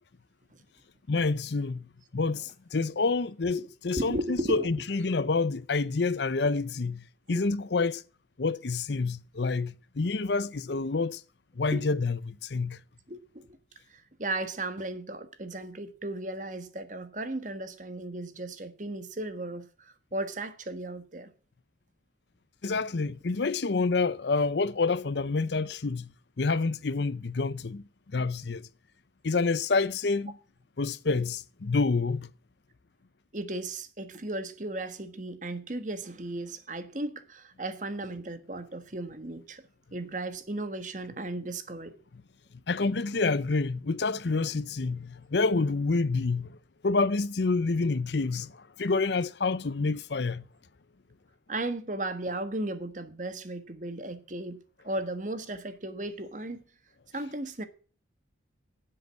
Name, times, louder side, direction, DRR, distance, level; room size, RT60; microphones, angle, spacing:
voice 1, 1.1-8.0 8.4-11.2 11.6-12.8 22.6-28.7 29.2-30.4 30.8-32.3 42.1-42.2 42.7-46.6 46.8-50.5, left 3 dB, 65° left, 0.6 m, -28 dB
voice 2, 4.0-4.7 7.3-7.4 11.7-11.8 13.1-13.5 13.9-21.3 33.3-39.6 39.9-41.9 51.5-56.6 57.1-57.6, right 1 dB, 40° right, 1.4 m, -35 dB
11.0 x 7.8 x 8.0 m
head